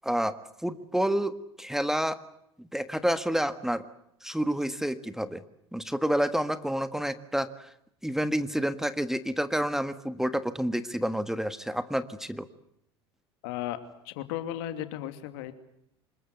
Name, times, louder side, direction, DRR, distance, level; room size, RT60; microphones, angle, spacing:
voice 1, 0.0-0.3 0.6-2.2 2.6-3.8 4.2-5.4 5.7-7.7 8.0-12.5, equal, 5° right, 12 dB, 1.6 m, -29 dB
voice 2, 13.4-13.8 14.0-15.5, left 12 dB, 70° left, 9 dB, 2.7 m, -35 dB
26.0 x 21.5 x 7.9 m, 0.76 s
hypercardioid pair, 75°, 14 cm